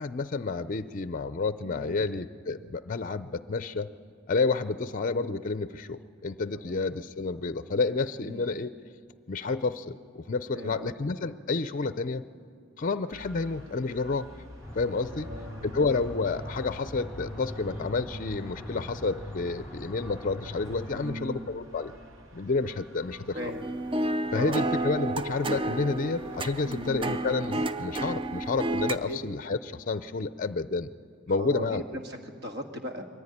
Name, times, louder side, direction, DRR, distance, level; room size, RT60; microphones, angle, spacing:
voice 1, 0.0-3.9 4.3-8.7 9.3-12.2 12.8-14.3 14.7-15.3 15.6-21.9 22.3-23.4 24.3-30.9 31.3-31.8, left 3 dB, 40° left, 13 dB, 0.5 m, -30 dB
voice 2, 1.6-2.1 6.5-6.8 8.2-8.4 10.5-10.9 15.0-15.8 20.9-21.5 23.3-23.7 24.2-24.6 26.6-27.1 29.0-29.2 31.4-33.0, equal, 55° right, 4 dB, 1.8 m, -39 dB
sound 1, 13.1-29.0, equal, 75° right, 2.0 m, -51 dB
sound 2, 14.6-21.1, equal, 10° right, 4.1 m, -41 dB
sound 3, 23.3-29.0, right 2 dB, 25° right, 0.5 m, -31 dB
22.5 x 14.5 x 9.9 m, 2.2 s
head